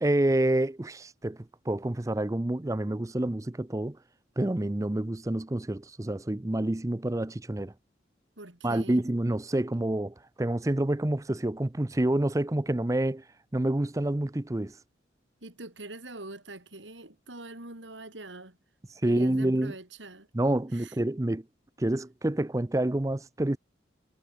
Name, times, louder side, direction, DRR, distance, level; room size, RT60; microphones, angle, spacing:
voice 1, 0.0-1.4 1.7-4.0 4.4-7.7 8.6-13.2 13.5-14.7 19.0-19.7 20.3-21.4 21.8-23.6, right 1 dB, 15° right, 0.5 m, -28 dB
voice 2, 8.4-9.0 15.4-18.6 19.0-20.3 20.7-21.0, right 2 dB, 85° right, 4.6 m, -44 dB
head